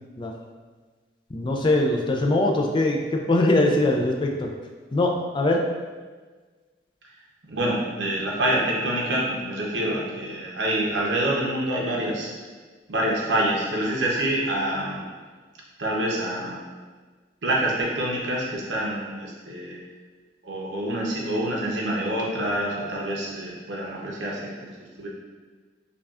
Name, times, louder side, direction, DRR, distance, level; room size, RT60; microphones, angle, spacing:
voice 1, 1.3-3.0 3.3-4.3 4.9-5.6, left 2 dB, 25° left, 1 dB, 0.3 m, -21 dB
voice 2, 7.5-12.3 12.9-15.0 15.8-16.6 17.4-19.8 20.4-24.7 25.0-25.1, right 1 dB, 85° right, -3 dB, 0.8 m, -26 dB
5.4 x 2.3 x 2.4 m, 1.4 s
head